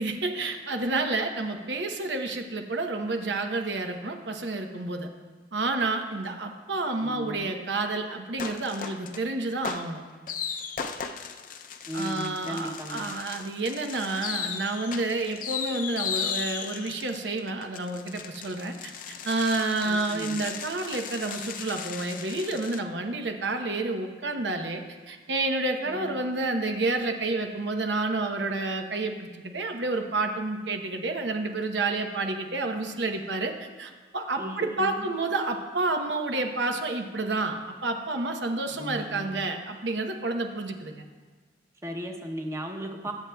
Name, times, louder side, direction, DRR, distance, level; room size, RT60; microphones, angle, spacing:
voice 1, 0.0-5.1 5.5-10.0 11.9-24.8 25.1-41.0, right 2 dB, 90° right, 4 dB, 0.9 m, -29 dB
voice 2, 7.0-7.5 11.9-13.1 19.8-20.4 25.9-26.2 34.4-35.1 38.7-39.5 41.8-43.1, equal, 15° right, 2 dB, 0.8 m, -36 dB
sound 1, 8.4-9.2 9.6-22.8, left 7 dB, 50° left, 0.5 m, -36 dB
21.0 x 7.7 x 2.3 m, 1.4 s
head